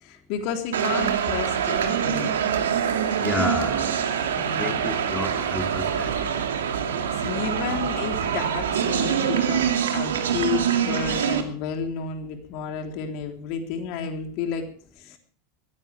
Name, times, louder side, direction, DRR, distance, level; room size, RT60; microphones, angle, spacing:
voice 1, 0.0-2.4 4.3-5.0 6.9-14.7 15.0-15.2, left 6 dB, 55° left, 4 dB, 3.6 m, -32 dB
sound 1, 0.7-11.4, right 8 dB, 75° right, 2.5 m, -25 dB
voice 2, 3.2-3.9 4.6-6.2, left 2 dB, 15° left, 4 dB, 2.5 m, -30 dB
21.5 x 16.0 x 3.5 m, 0.42 s
figure-of-eight pair, 85°, 0 cm